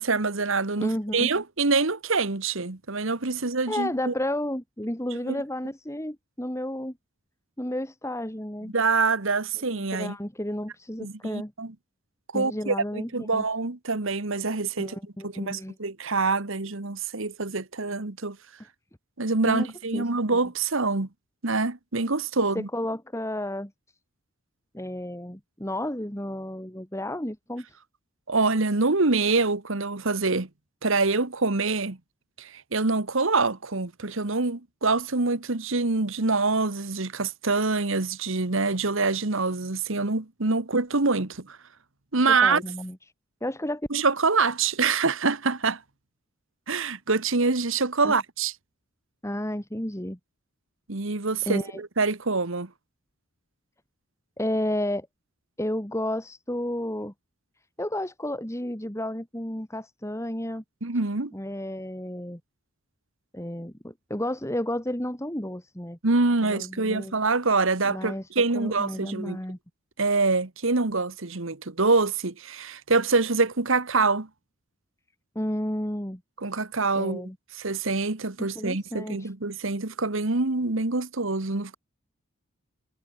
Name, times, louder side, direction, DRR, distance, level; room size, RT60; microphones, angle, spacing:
voice 1, 0.0-4.1 5.3-5.4 8.7-10.2 11.0-11.7 12.3-15.0 15.2-18.4 19.2-21.1 21.4-22.7 28.3-30.5 30.8-32.0 32.4-41.6 42.1-42.6 43.9-45.8 46.7-48.5 50.9-52.7 60.8-61.3 66.0-69.4 70.0-74.3 76.4-77.2 77.6-81.7, right 3 dB, 60° right, 1.4 m, -25 dB
voice 2, 0.8-1.3 3.7-7.0 7.6-8.7 9.6-11.5 12.3-13.4 14.8-15.8 19.4-20.1 22.5-23.7 24.7-27.8 42.3-43.0 43.4-43.9 48.0-48.2 49.2-50.2 51.5-51.8 54.4-55.1 55.6-57.1 57.8-60.6 61.3-62.4 63.3-66.0 66.4-67.1 67.9-68.3 68.5-69.6 75.4-76.2 77.0-77.4 78.4-79.3, left 1 dB, 15° left, 2.4 m, -32 dB
head